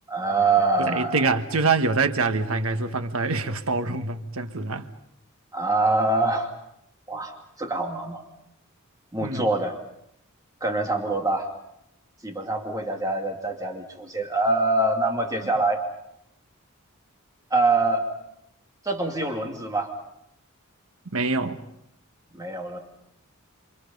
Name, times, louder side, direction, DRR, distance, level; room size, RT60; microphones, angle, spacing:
voice 1, 0.1-1.2 5.5-6.5 7.1-7.3 7.6-8.2 9.1-9.8 10.6-11.5 12.2-15.8 17.5-18.1 18.8-19.9 22.3-22.8, right 2 dB, 15° right, 2.6 m, -24 dB
voice 2, 0.8-4.9 9.2-9.5 21.1-21.6, right 3 dB, 70° right, 1.5 m, -25 dB
28.5 x 27.5 x 5.4 m
head